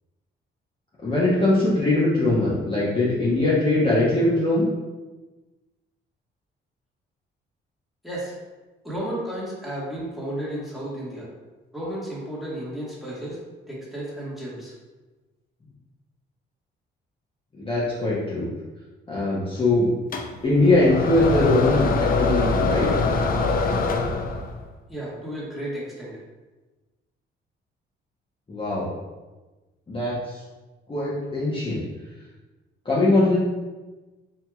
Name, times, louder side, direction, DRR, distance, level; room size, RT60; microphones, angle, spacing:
voice 1, 1.0-4.6 17.6-18.5 19.1-19.9 20.4-22.9 28.5-28.9 29.9-30.4 30.9-31.8 32.8-33.4, left 2 dB, 25° left, -8 dB, 0.9 m, -21 dB
voice 2, 8.0-8.4 8.8-11.3 11.7-13.4 13.7-14.7 24.9-26.1, right 1 dB, ahead, -7 dB, 1.3 m, -33 dB
sound 1, 20.1-24.6, left 3 dB, 45° left, 0.5 m, -23 dB
4.6 x 2.7 x 2.3 m, 1.2 s
cardioid pair, 90°, 20 cm